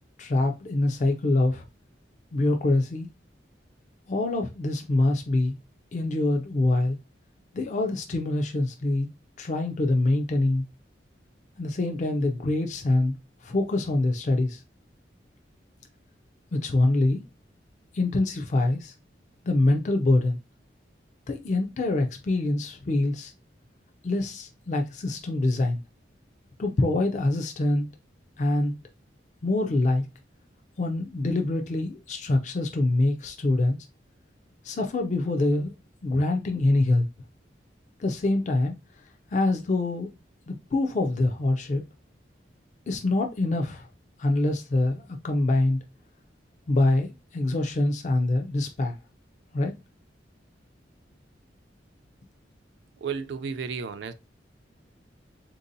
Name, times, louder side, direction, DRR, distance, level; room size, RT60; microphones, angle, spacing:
voice 1, 0.2-1.7 2.3-3.1 4.1-5.5 5.9-7.0 7.5-9.1 9.4-10.6 11.6-13.1 13.4-14.6 16.5-17.2 17.9-18.9 19.4-20.4 21.3-23.3 24.0-25.8 26.6-27.9 28.4-28.8 29.4-30.0 30.8-33.8 34.6-35.7 36.0-37.1 38.0-38.8 39.3-40.1 40.5-41.8 42.9-43.9 44.2-45.8 46.7-49.0 49.5-49.7, left 2 dB, 40° left, 0.4 m, -25 dB
voice 2, 53.0-54.1, right 6 dB, 70° right, 0.3 m, -33 dB
3.6 x 2.6 x 2.6 m
head